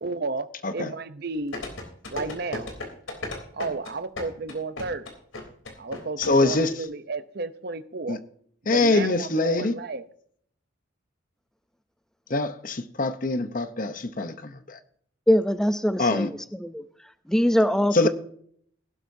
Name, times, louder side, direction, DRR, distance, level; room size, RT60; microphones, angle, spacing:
voice 1, 0.0-0.5 0.7-1.6 2.1-2.7 3.5-5.1 5.8-8.2 8.6-10.0, right 3 dB, 50° right, 0.7 m, -32 dB
sound 1, 1.5-6.6 6.8-6.9, left 2 dB, 85° left, 3.4 m, -34 dB
voice 2, 6.2-6.7 8.1-8.2 8.7-9.7 12.3-14.8 16.0-16.3 17.9-18.1, left 2 dB, 45° left, 0.8 m, -24 dB
voice 3, 15.3-16.8 17.3-18.1, equal, 5° left, 0.4 m, -22 dB
17.5 x 12.0 x 2.7 m
head